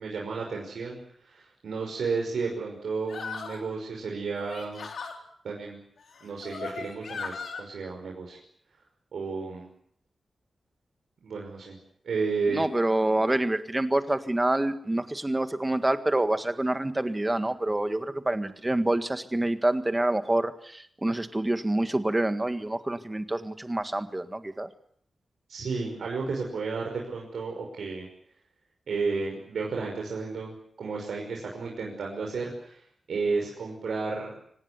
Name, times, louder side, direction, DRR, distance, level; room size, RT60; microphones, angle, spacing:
voice 1, 0.0-4.9 5.4-5.8 6.2-8.4 9.1-9.7 11.2-11.8 12.0-12.7 25.5-28.1 28.9-34.4, right 4 dB, 90° right, -1 dB, 5.7 m, -32 dB
sound 1, 3.1-3.7 4.4-5.2 6.1-7.6, left 5 dB, 75° left, 4.0 m, -37 dB
voice 2, 12.5-24.7, right 1 dB, 15° right, 9 dB, 1.7 m, -27 dB
25.0 x 19.0 x 9.8 m, 0.69 s
wide cardioid pair, 140°, 0 cm